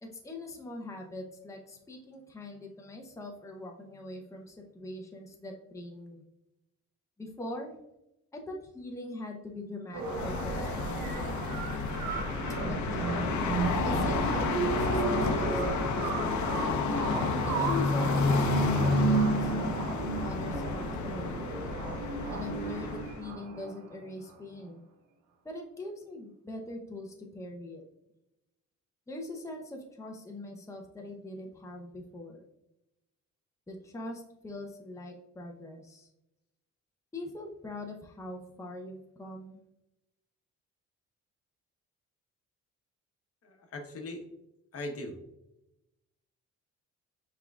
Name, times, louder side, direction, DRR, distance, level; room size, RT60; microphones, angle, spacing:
voice 1, 0.0-6.2 7.2-7.7 8.3-11.3 12.6-13.3 13.8-16.3 17.5-21.4 22.3-24.8 25.4-27.8 29.1-32.4 33.7-36.1 37.1-39.6, left 2 dB, 10° left, 1 dB, 0.8 m, -42 dB
sound 1, 9.9-23.9, right 5 dB, 85° right, 0.8 m, -34 dB
sound 2, 10.0-23.3, left 4 dB, 70° left, 0.8 m, -30 dB
voice 2, 43.4-44.2 44.7-45.2, left 2 dB, 50° left, 3 dB, 1.0 m, -39 dB
5.7 x 3.7 x 2.3 m, 0.89 s
cardioid pair, 90°, 30 cm